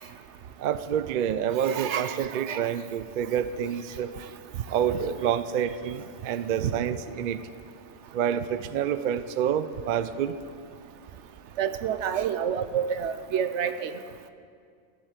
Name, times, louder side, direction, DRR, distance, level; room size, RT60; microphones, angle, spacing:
voice 1, 0.6-4.1 4.7-7.4 8.1-10.3, right 9 dB, 55° right, 12 dB, 0.5 m, -28 dB
voice 2, 1.6-2.2 2.5-2.6 6.6-6.7 11.6-13.9, right 8 dB, 75° right, 11 dB, 1.0 m, -28 dB
14.5 x 7.8 x 8.0 m, 2.3 s
omnidirectional pair, 1.2 m